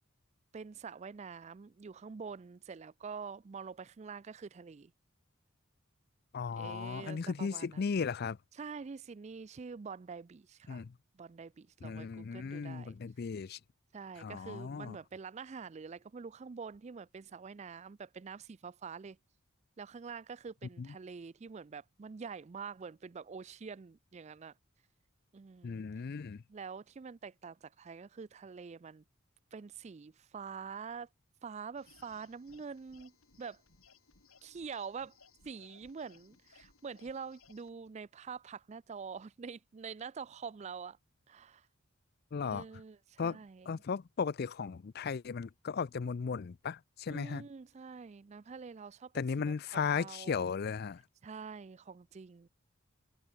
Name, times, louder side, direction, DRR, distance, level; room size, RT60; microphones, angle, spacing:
voice 1, 0.5-4.9 6.6-7.8 8.5-10.8 11.1-13.0 13.9-19.2 19.8-24.5 25.3-25.8 26.5-29.0 29.5-31.1 31.4-33.6 34.4-35.2 35.4-41.0 41.3-41.7 42.4-43.8 47.1-50.4 51.2-52.5, right 5 dB, 30° right, 0.4 m, -46 dB
voice 2, 6.3-8.4 10.7-10.9 11.8-13.6 14.2-15.0 20.8-20.9 25.6-26.4 42.3-42.6 43.2-43.4 43.7-47.4 49.1-51.0, left 5 dB, 50° left, 0.4 m, -36 dB
sound 1, 31.8-37.7, left 4 dB, 85° left, 7.9 m, -63 dB
head